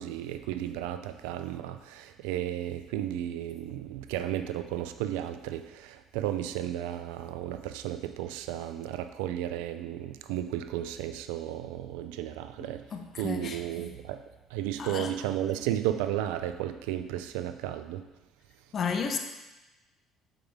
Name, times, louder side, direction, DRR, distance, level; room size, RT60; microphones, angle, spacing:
voice 1, 0.0-12.8 13.2-14.2 14.5-18.1, right 12 dB, 75° right, 10 dB, 0.4 m, -33 dB
voice 2, 12.6-13.6 14.8-15.1 18.7-19.2, left 6 dB, 45° left, 5 dB, 0.9 m, -33 dB
7.6 x 5.1 x 3.7 m, 1.1 s
hypercardioid pair, 55°, 0 cm